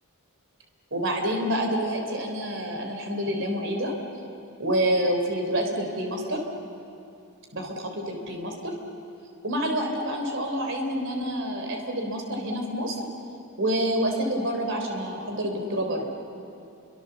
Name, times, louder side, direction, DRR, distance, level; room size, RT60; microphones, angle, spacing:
voice 1, 0.9-3.9 4.6-6.4 7.5-8.8 9.4-13.0 13.6-16.1, equal, 55° right, 3 dB, 3.8 m, -27 dB
30.0 x 24.0 x 7.0 m, 2.6 s
head